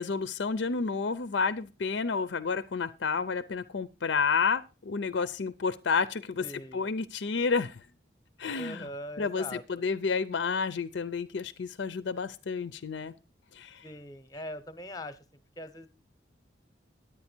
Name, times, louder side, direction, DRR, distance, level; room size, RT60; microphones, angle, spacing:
voice 1, 0.0-7.8 8.4-8.9 9.2-13.1 13.5-13.9, left 5 dB, 70° left, 14 dB, 0.5 m, -30 dB
voice 2, 6.4-6.9 8.5-9.6 13.8-15.2 15.6-15.9, left 1 dB, 20° left, 12 dB, 0.8 m, -41 dB
11.0 x 8.8 x 4.4 m, 0.30 s
head